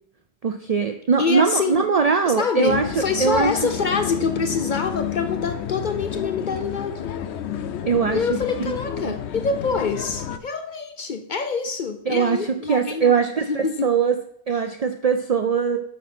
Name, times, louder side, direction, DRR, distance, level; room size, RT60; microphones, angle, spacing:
voice 1, 0.4-3.5 7.8-8.2 8.6-8.7 9.0-9.1 12.1-14.1 14.5-15.8, right 6 dB, 50° right, 7 dB, 0.5 m, -21 dB
voice 2, 1.2-1.9 2.3-7.1 8.1-13.2 13.5-13.9, left 5 dB, 55° left, 8 dB, 0.7 m, -26 dB
sound 1, 2.7-10.4, left 10 dB, 90° left, 0.9 m, -30 dB
8.4 x 6.2 x 4.3 m, 0.68 s
omnidirectional pair, 1.1 m